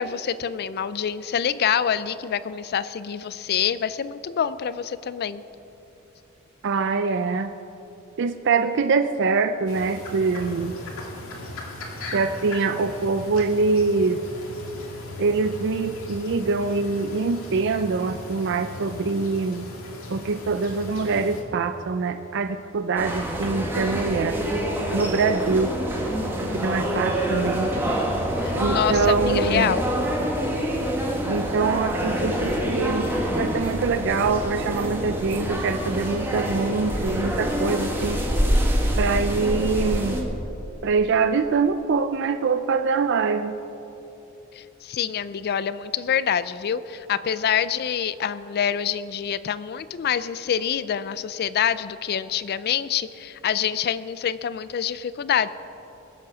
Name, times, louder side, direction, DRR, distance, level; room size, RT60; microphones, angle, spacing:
voice 1, 0.0-5.4 28.4-29.9 44.5-55.5, left 8 dB, 50° left, 15 dB, 0.4 m, -26 dB
voice 2, 6.6-7.5 8.2-10.8 12.1-14.2 15.2-19.7 20.1-24.4 24.9-25.8 26.5-27.7 28.5-29.7 31.3-38.2 39.0-40.2 40.8-43.5, right 4 dB, 60° right, 9 dB, 0.4 m, -24 dB
sound 1, 9.7-21.4, left 1 dB, 85° left, 2.2 m, -38 dB
sound 2, 23.0-40.2, equal, 10° right, 1.7 m, -26 dB
21.0 x 7.5 x 6.2 m, 3.0 s
head